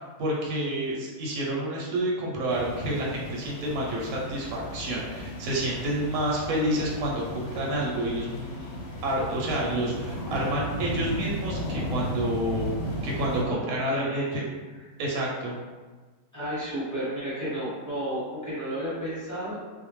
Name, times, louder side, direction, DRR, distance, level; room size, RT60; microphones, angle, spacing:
voice 1, 0.0-8.7 9.0-12.7 13.0-14.2 15.0-15.5, right 1 dB, 65° right, -4 dB, 0.9 m, -29 dB
sound 1, 2.5-13.4, equal, 85° left, 1.2 m, -35 dB
voice 2, 13.9-14.8 16.3-19.6, equal, 10° left, -12 dB, 1.0 m, -32 dB
2.7 x 2.0 x 3.0 m, 1.3 s
omnidirectional pair, 1.8 m